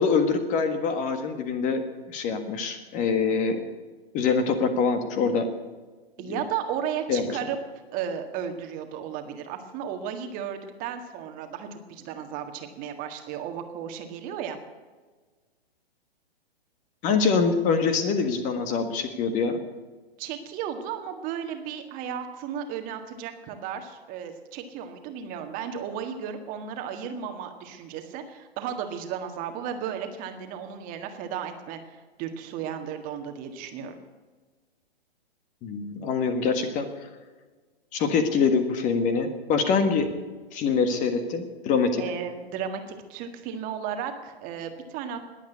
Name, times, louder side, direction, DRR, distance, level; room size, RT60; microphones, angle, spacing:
voice 1, 0.0-1.8 2.1-3.6 4.1-5.5 6.2-6.4 7.1-7.2 17.0-19.6 35.6-36.9 37.9-40.1 40.5-42.0, left 5 dB, 25° left, 9 dB, 1.6 m, -24 dB
voice 2, 6.2-7.6 7.9-14.6 20.2-34.0 42.0-45.3, right 8 dB, 25° right, 6 dB, 1.7 m, -34 dB
21.0 x 8.4 x 8.2 m, 1.4 s
figure-of-eight pair, 125°, 31 cm